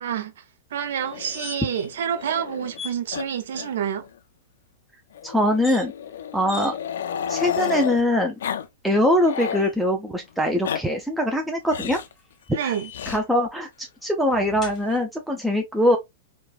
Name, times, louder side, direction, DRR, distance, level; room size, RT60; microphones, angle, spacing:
voice 1, 0.0-0.3 0.7-4.0 12.5-12.9, right 8 dB, 70° right, 0.4 m, -28 dB
Growling, 0.9-2.8 3.1-3.3 3.5-3.7 4.0-4.1 5.1-8.0 8.4-8.7 9.0-9.7 10.4-10.8 11.7-12.1 12.9-13.2 14.3-15.0, left 8 dB, 75° left, 0.3 m, -32 dB
sound 1, 1.0-1.9 2.2-2.3 2.7-3.0 5.5-5.9 6.5-6.7 7.4-8.0 9.0-9.8 11.7-13.3 14.6-14.8, left 4 dB, 15° left, 1.0 m, -41 dB
voice 2, 5.2-5.9 6.3-6.7 7.3-8.3 8.8-12.0 12.6-12.8 13.1-16.0, left 1 dB, 5° right, 0.4 m, -22 dB
3.0 x 2.1 x 2.2 m
hypercardioid pair, 115°, 0 cm